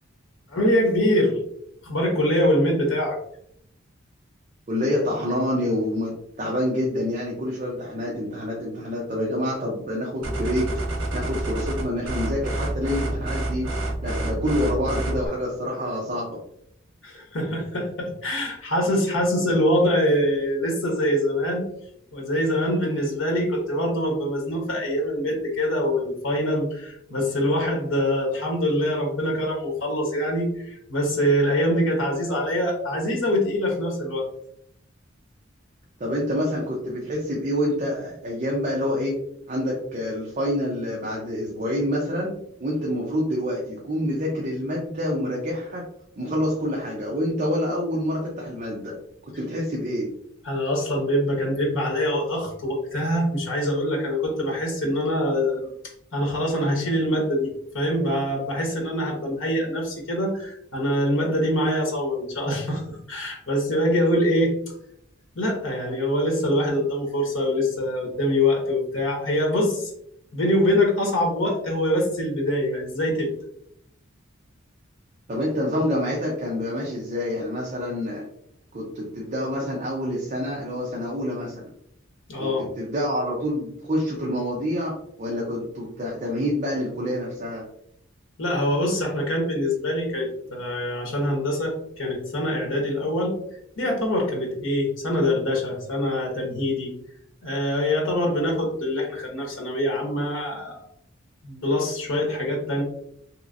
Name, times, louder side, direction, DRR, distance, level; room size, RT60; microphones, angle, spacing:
voice 1, 0.5-1.4 1.8-3.2 17.0-21.6 22.1-34.3 50.4-55.7 56.1-57.5 57.7-64.5 65.3-69.9 70.3-73.3 82.3-82.6 88.4-93.3 93.8-96.9 97.4-100.8 101.4-102.8, left 1 dB, 80° left, 0 dB, 0.9 m, -24 dB
voice 2, 4.7-10.7 11.1-13.7 14.0-16.4 36.0-39.2 39.5-42.3 42.6-45.9 46.2-49.0 49.2-50.1 75.3-78.3 78.7-81.7 82.4-87.6, equal, 40° right, -2 dB, 0.6 m, -27 dB
sound 1, 10.2-15.3, right 1 dB, 75° right, 1.0 m, -28 dB
3.0 x 2.9 x 2.5 m, 0.71 s
head